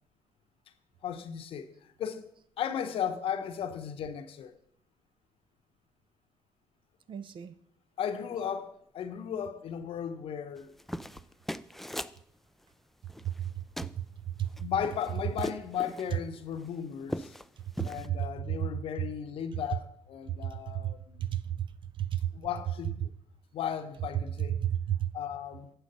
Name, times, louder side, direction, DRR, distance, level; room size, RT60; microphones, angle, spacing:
voice 1, 1.0-2.3 2.6-4.5 8.0-10.8 14.6-17.3 17.8-21.4 22.3-23.1 23.5-24.6 25.1-25.7, left 8 dB, 60° left, 0.9 m, -36 dB
voice 2, 7.1-7.6 13.2-13.5 14.4-14.5 20.8-20.9 21.3-21.6 22.0-22.3 24.6-25.1, right 11 dB, 50° right, 0.7 m, -31 dB
sound 1, 10.6-12.2 13.1-13.5 13.8-14.0 14.4-16.1 16.6-16.7 17.0-17.5 17.7-18.1, equal, ahead, 0.4 m, -39 dB
9.1 x 6.4 x 5.4 m
hypercardioid pair, 60°, 11 cm